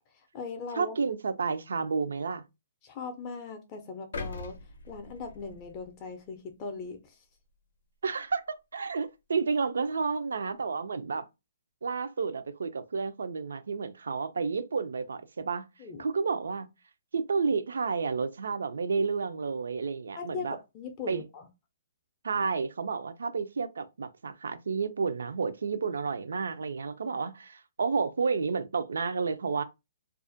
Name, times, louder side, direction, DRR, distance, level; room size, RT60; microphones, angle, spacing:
voice 1, 0.1-1.0 2.8-4.6 4.9-7.2 15.8-16.1 20.2-20.5 20.7-21.5, left 4 dB, 25° left, 0.4 m, -39 dB
voice 2, 0.7-2.4 8.0-11.3 11.8-15.7 16.0-16.7 17.1-20.6 21.1-21.2 22.2-29.6, right 5 dB, 85° right, 0.4 m, -31 dB
sound 1, 4.1-6.3 6.8-6.9, left 3 dB, 80° left, 0.5 m, -42 dB
2.3 x 2.1 x 2.6 m
hypercardioid pair, 160°, 0 cm